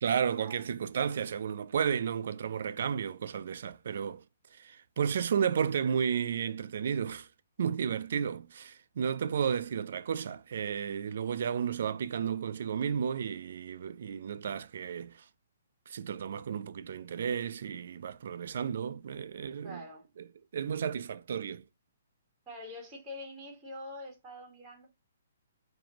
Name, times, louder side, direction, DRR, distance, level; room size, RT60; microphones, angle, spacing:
voice 1, 0.0-4.2 4.5-7.3 7.6-15.3 15.9-19.8 20.2-20.3 20.5-21.6, right 7 dB, 55° right, 0.3 m, -33 dB
voice 2, 19.6-20.0 22.5-24.9, left 1 dB, 10° right, 1.4 m, -45 dB
4.8 x 2.6 x 2.9 m
hypercardioid pair, 170°, 0 cm